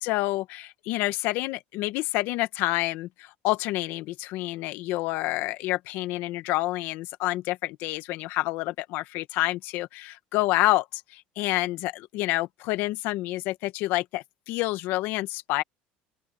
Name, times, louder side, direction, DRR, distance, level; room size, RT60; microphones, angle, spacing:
voice 1, 0.0-15.6, left 18 dB, 65° left, 1.5 m, -28 dB
open air
cardioid pair, 130°, 4 cm